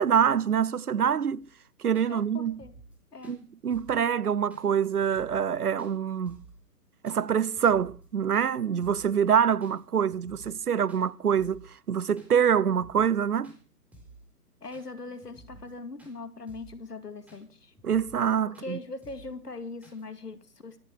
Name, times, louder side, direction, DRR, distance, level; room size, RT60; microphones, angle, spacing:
voice 1, 0.0-1.5 1.8-2.6 3.2-3.4 3.6-6.4 7.0-13.5 17.8-18.8, right 8 dB, 70° right, 0.9 m, -25 dB
sound 1, 1.4-1.5 1.9-2.1 2.4-3.0 3.2-3.4 3.7-4.0 4.5-4.7 5.0-5.5 5.8-5.9 6.3-6.6 7.1-7.2 7.5-8.1 8.3-8.5 8.8-9.1 9.6-9.8 10.1-10.6 10.9-11.0 11.4-11.7 12.2-12.3 12.6-13.2 13.4-13.6 13.9-14.2 14.7-14.9 15.2-15.7 16.0-16.1 16.5-16.8 17.3-17.4 17.7-18.3 18.5-18.7 19.0-19.3 19.8-20.0, right 1 dB, 5° right, 4.0 m, -52 dB
voice 2, 2.1-2.7 3.1-3.3 14.6-17.7 18.5-20.8, left 3 dB, 80° left, 2.5 m, -41 dB
24.5 x 9.4 x 4.9 m
figure-of-eight pair, 135°, 47 cm